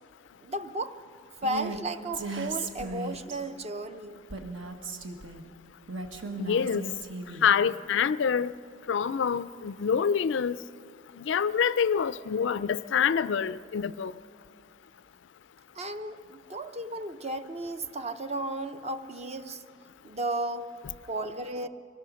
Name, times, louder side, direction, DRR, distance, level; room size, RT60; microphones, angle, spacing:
voice 1, 0.4-1.0 1.4-4.2 15.8-19.6 20.0-20.7 21.1-21.7, right 1 dB, 30° right, 0.7 m, -34 dB
Female speech woman speaking, 1.4-1.8 2.1-3.4 4.3-5.4 5.9-7.5, right 3 dB, 70° right, 1.5 m, -36 dB
voice 2, 6.4-6.8 7.4-8.5 8.9-10.6 11.2-14.1, left 7 dB, 65° left, 0.4 m, -26 dB
23.5 x 18.0 x 6.4 m
head